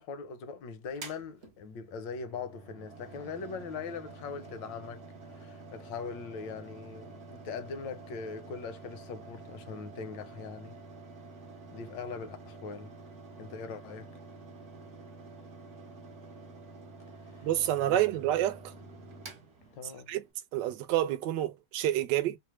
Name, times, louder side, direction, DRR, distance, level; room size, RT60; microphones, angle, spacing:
voice 1, 0.0-10.7 11.7-12.9 13.4-14.1 17.9-18.0 19.8-20.1, left 5 dB, 75° left, 1.3 m, -41 dB
Mechanical fan, 0.9-20.3, right 3 dB, 50° right, 0.9 m, -49 dB
voice 2, 17.4-18.7 20.1-20.2 20.5-22.4, right 13 dB, 70° right, 1.2 m, -28 dB
3.3 x 2.0 x 3.0 m
omnidirectional pair, 2.1 m